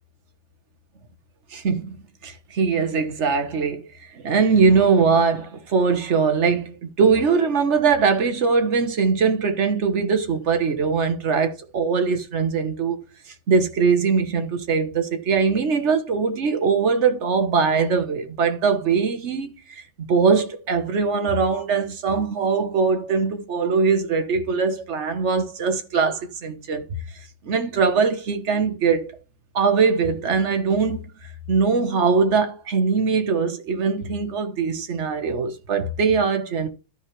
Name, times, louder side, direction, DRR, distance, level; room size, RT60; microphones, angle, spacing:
voice 1, 1.5-2.0 2.2-3.9 4.1-13.0 13.5-26.8 27.4-29.1 29.5-31.0 31.5-36.7, right 5 dB, 45° right, 1.1 m, -21 dB
13.0 x 4.5 x 3.1 m
omnidirectional pair, 2.0 m